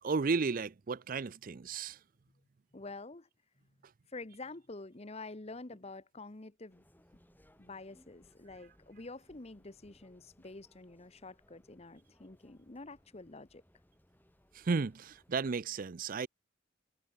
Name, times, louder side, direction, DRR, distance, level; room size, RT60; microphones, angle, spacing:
voice 1, 0.0-2.0 14.5-16.3, right 4 dB, 45° right, 0.5 m, -33 dB
voice 2, 2.7-3.3 4.1-6.8 7.6-13.6, left 3 dB, 30° left, 1.0 m, -48 dB
sound 1, 6.7-15.6, equal, 10° left, 4.6 m, -66 dB
head